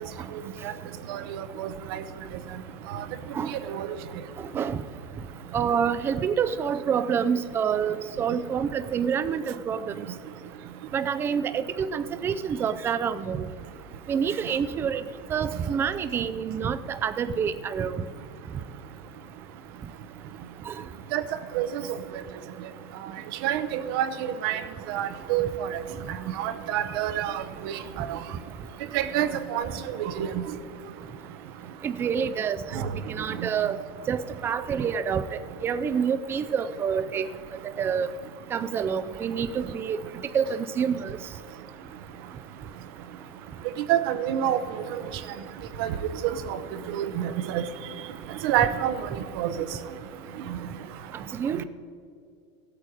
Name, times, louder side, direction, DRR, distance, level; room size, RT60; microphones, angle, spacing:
voice 1, 1.1-2.0 2.9-3.0 3.5-3.9 21.1-21.2 21.5-21.8 23.4-24.6 24.9-25.7 26.3-28.2 28.9-30.3 32.7-32.9 33.4-33.5 43.9-44.6 45.8-45.9 46.2-46.6 46.9-47.6 48.4-49.1 49.4-49.5 50.5-50.6, right 11 dB, 60° right, 11 dB, 0.8 m, -27 dB
voice 2, 4.4-4.8 5.5-10.1 10.9-13.5 14.1-15.0 15.3-18.0 20.7-20.8 31.8-37.3 37.6-38.1 38.5-40.0 40.3-41.2 51.3-51.6, right 7 dB, 15° right, 13 dB, 0.3 m, -27 dB
16.5 x 8.4 x 4.8 m, 2.5 s
supercardioid pair, 165°, 13 cm